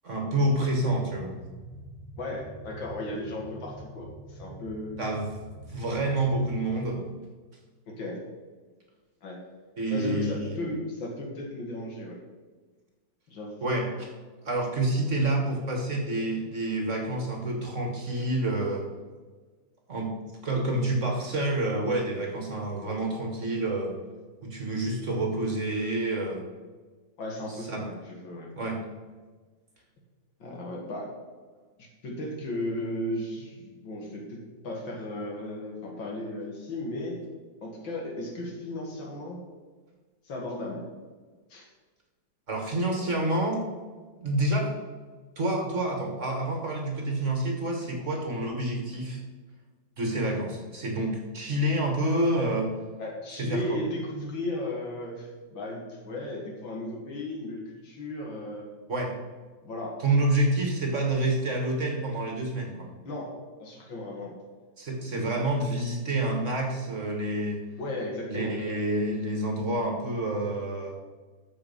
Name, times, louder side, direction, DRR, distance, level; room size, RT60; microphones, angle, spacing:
voice 1, 0.0-1.3 5.0-7.0 9.8-10.6 13.6-14.1 14.4-18.9 19.9-20.1 20.4-23.9 24.4-26.4 27.7-27.8 28.5-28.8 42.5-43.6 44.2-44.8 45.4-49.2 50.0-52.7 53.3-53.8 58.9-59.1 60.0-62.9 64.8-67.6 68.3-71.0, right 1 dB, 40° right, 1 dB, 1.6 m, -28 dB
sound 1, 0.7-6.9, right 1 dB, 25° left, 3.8 m, -45 dB
voice 2, 2.2-4.9 7.9-8.2 9.2-9.4 9.9-12.2 13.3-13.6 27.2-28.5 30.4-31.1 31.8-37.2 37.6-39.4 40.2-40.8 41.5-41.7 53.0-58.7 59.6-60.0 63.0-64.4 67.8-68.5, left 1 dB, 70° left, -1 dB, 2.7 m, -35 dB
13.5 x 5.0 x 5.4 m, 1.4 s
omnidirectional pair, 2.1 m